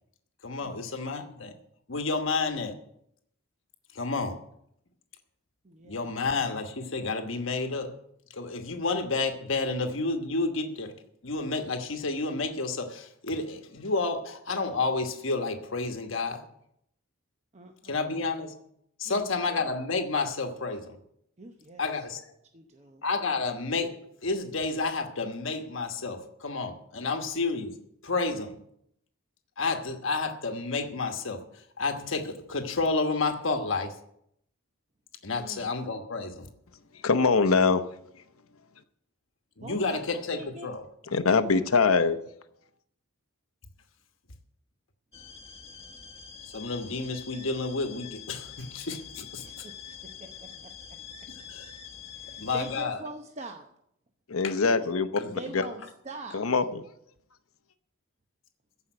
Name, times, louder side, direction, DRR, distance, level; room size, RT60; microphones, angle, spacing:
voice 1, 0.4-1.5 1.9-2.8 3.9-4.4 5.8-8.0 8.3-10.9 11.2-16.5 17.8-18.5 19.0-21.0 21.8-22.3 23.0-28.6 29.6-34.0 35.2-36.5 39.6-40.9 46.4-49.6 51.3-51.7 52.4-53.0 54.4-54.6 55.1-55.4, left 3 dB, 65° left, 6 dB, 1.2 m, -30 dB
voice 2, 5.6-6.1 17.5-18.1 19.0-19.2 21.4-21.8 22.5-23.0 27.0-27.3 35.3-35.7 39.6-40.0 40.4-40.7 41.5-41.7 42.0-42.1 49.4-49.7 50.0-51.0 52.2-53.7 55.2-56.5, right 2 dB, 30° right, 4 dB, 0.8 m, -43 dB
voice 3, 37.0-37.8 41.1-42.2 54.3-55.2 55.5-55.6 56.3-56.8, left 4 dB, 85° left, 9 dB, 0.9 m, -23 dB
sound 1, 45.1-52.8, left 7 dB, 30° left, 1.0 m, -45 dB
14.5 x 5.5 x 9.0 m, 0.74 s
head